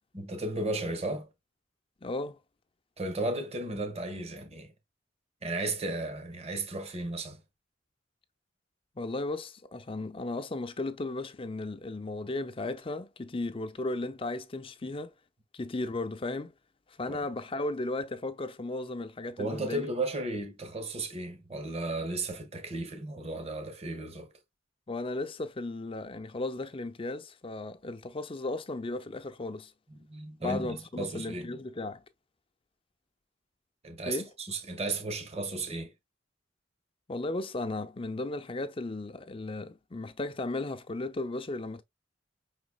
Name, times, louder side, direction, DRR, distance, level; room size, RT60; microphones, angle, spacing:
voice 1, 0.1-1.3 3.0-4.7 5.4-7.4 14.8-14.9 17.1-17.2 19.4-24.3 29.9-31.6 33.8-35.9, right 2 dB, 35° right, 1.2 m, -34 dB
voice 2, 2.0-2.4 9.0-15.1 15.5-16.5 16.9-19.9 24.9-29.7 30.4-32.0 34.1-34.3 37.1-41.8, left 2 dB, 30° left, 0.5 m, -35 dB
5.6 x 4.0 x 2.2 m
head